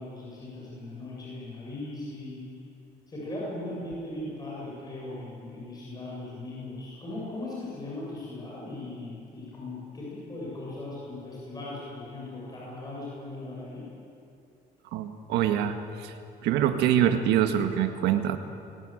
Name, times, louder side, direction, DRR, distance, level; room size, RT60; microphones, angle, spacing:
voice 1, 0.0-2.4 3.1-13.8, left 2 dB, 25° left, -5 dB, 7.6 m, -38 dB
voice 2, 14.9-16.1 16.4-18.4, right 10 dB, 85° right, 7 dB, 1.8 m, -25 dB
23.0 x 18.0 x 9.2 m, 2.5 s
cardioid pair, 110°, 17 cm